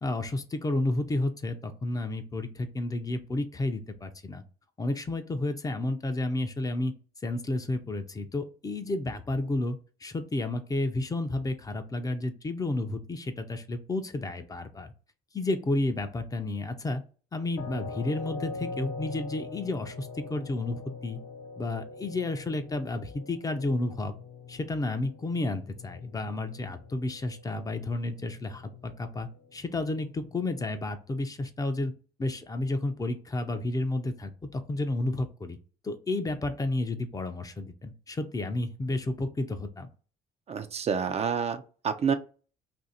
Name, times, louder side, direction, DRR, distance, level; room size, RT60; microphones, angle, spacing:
voice 1, 0.0-4.4 4.8-6.9 7.2-14.9 15.3-17.0 17.3-21.2 21.6-24.2 24.5-31.9 32.2-35.6 35.8-39.9, left 2 dB, 20° left, 7 dB, 0.5 m, -31 dB
sound 1, 17.6-30.6, left 4 dB, 80° left, 0.7 m, -43 dB
voice 2, 40.5-42.1, right 6 dB, 40° right, 8 dB, 0.4 m, -28 dB
2.8 x 2.6 x 4.1 m, 0.37 s
cardioid pair, 110°, 17 cm